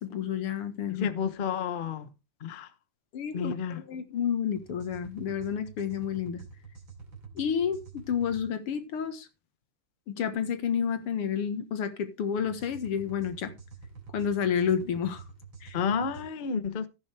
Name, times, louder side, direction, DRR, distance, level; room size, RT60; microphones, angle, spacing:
voice 1, 0.0-1.1 3.1-6.4 7.4-7.8 8.1-9.3 10.1-13.5 14.1-15.2 15.6-15.8, left 8 dB, 90° left, 2.4 m, -30 dB
voice 2, 1.0-2.1 2.4-2.7 3.3-3.8 15.7-16.9, left 6 dB, 40° left, 0.7 m, -31 dB
sound 1, 4.6-8.5 12.4-16.3, right 5 dB, 60° right, 3.5 m, -47 dB
15.0 x 8.7 x 3.4 m
omnidirectional pair, 2.4 m